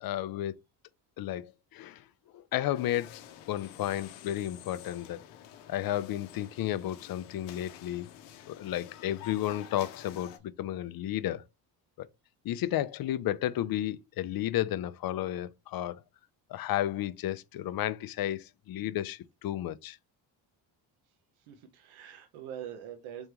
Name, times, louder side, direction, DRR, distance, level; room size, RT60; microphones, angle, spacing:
voice 1, 0.0-0.6 1.2-2.0 2.3-3.2 3.5-5.2 5.7-8.1 8.5-11.4 12.0-12.1 12.4-16.0 16.5-20.0, left 13 dB, 50° left, 0.5 m, -32 dB
sound 1, 2.7-10.4, left 10 dB, 90° left, 0.8 m, -50 dB
voice 2, 21.1-23.3, right 9 dB, 70° right, 0.9 m, -44 dB
3.6 x 3.3 x 3.0 m
supercardioid pair, 80°, 49 cm